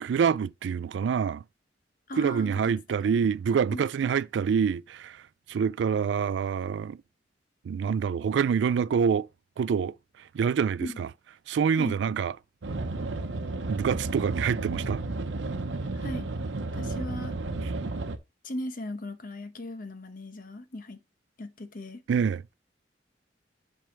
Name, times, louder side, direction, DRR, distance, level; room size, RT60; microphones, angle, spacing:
voice 1, 0.0-1.4 2.2-5.2 5.5-7.0 7.7-9.3 9.6-9.9 10.3-11.1 11.5-12.3 13.7-15.0 17.6-17.7 22.1-22.4, right 6 dB, 75° right, 0.3 m, -26 dB
voice 2, 2.1-2.7 3.0-3.2 3.7-3.8 10.8-11.0 11.8-12.0 15.9-16.3 16.7-17.4 18.4-21.0 21.4-22.0, left 1 dB, 50° left, 0.9 m, -38 dB
sound 1, 12.6-18.2, right 2 dB, 90° right, 0.8 m, -32 dB
7.5 x 3.4 x 6.0 m
head